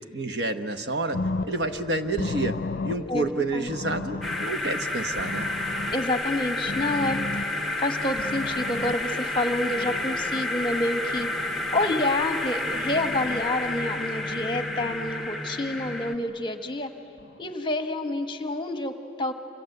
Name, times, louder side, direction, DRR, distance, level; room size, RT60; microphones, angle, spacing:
voice 1, 0.1-2.6 2.8-5.5, right 2 dB, 60° right, 8 dB, 1.0 m, -29 dB
sound 1, 1.1-10.4 10.9-11.9 12.4-13.4 14.2-14.9 15.7-16.4 17.2-17.5, left 3 dB, 55° left, 0.5 m, -36 dB
sound 2, 4.2-16.1, left 1 dB, ahead, 0.8 m, -30 dB
voice 2, 5.9-7.2 7.8-11.3 11.7-16.9 17.4-19.3, left 2 dB, 25° left, 6 dB, 1.1 m, -28 dB
27.5 x 26.0 x 7.9 m, 3.0 s
head